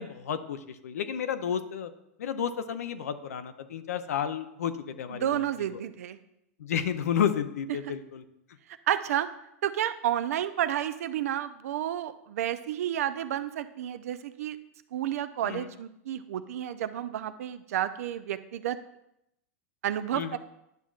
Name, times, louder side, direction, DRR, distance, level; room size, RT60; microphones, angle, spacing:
voice 1, 0.0-1.9 2.2-5.4 5.7-5.8 6.6-8.2 15.4-15.7 20.1-20.4, left 8 dB, 80° left, 10 dB, 0.6 m, -31 dB
voice 2, 5.1-6.2 8.9-9.3 9.6-14.6 14.9-18.8 19.8-20.4, right 11 dB, 70° right, 12 dB, 0.5 m, -31 dB
10.5 x 6.0 x 2.4 m, 0.81 s
hypercardioid pair, 105°, 8 cm